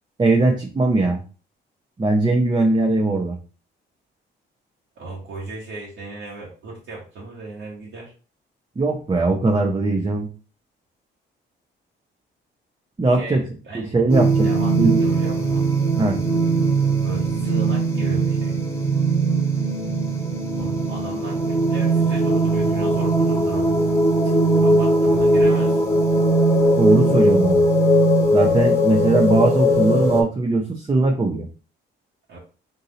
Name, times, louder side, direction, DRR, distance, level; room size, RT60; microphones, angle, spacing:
voice 1, 0.2-1.2 2.0-3.4 8.8-10.3 13.0-13.4 13.7-15.0 16.0-16.2 24.5-24.6 26.8-27.6 28.3-31.5, right 2 dB, 20° right, 0 dB, 0.7 m, -20 dB
voice 2, 5.0-8.1 13.1-14.0 14.4-15.7 17.0-18.5 20.5-23.7 24.6-25.8 32.3-32.4, right 2 dB, 70° right, -4 dB, 1.4 m, -36 dB
sound 1, 14.1-30.2, right 1 dB, 15° left, 1.3 m, -19 dB
4.0 x 2.7 x 4.0 m, 0.36 s
cardioid pair, 90°, 20 cm